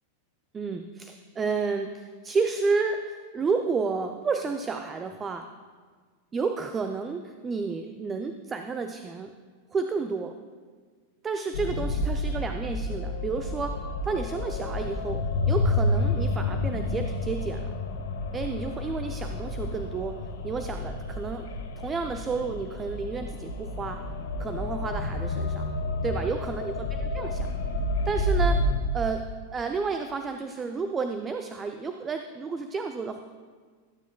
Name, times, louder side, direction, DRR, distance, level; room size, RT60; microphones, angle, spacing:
voice 1, 0.5-5.5 6.3-9.3 9.7-10.4 11.2-17.6 18.3-20.2 20.4-21.5 21.8-24.0 24.4-25.6 26.0-27.5 28.0-28.6 28.9-33.2, right 4 dB, 20° right, 7 dB, 0.5 m, -31 dB
sound 1, 11.5-28.8, left 2 dB, 60° left, 1.2 m, -30 dB
20.5 x 9.2 x 2.3 m, 1.5 s
figure-of-eight pair, 90°, 0 cm